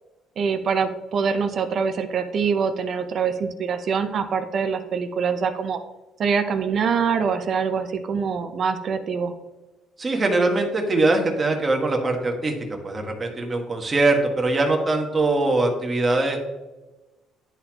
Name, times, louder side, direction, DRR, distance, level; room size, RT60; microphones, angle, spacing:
voice 1, 0.4-5.8 6.2-9.3, right 6 dB, 50° right, 8 dB, 0.7 m, -24 dB
voice 2, 10.0-12.5 12.8-16.4, right 2 dB, 25° right, 2 dB, 1.4 m, -22 dB
11.0 x 4.2 x 2.9 m, 1.1 s
cardioid pair, 110°, 0 cm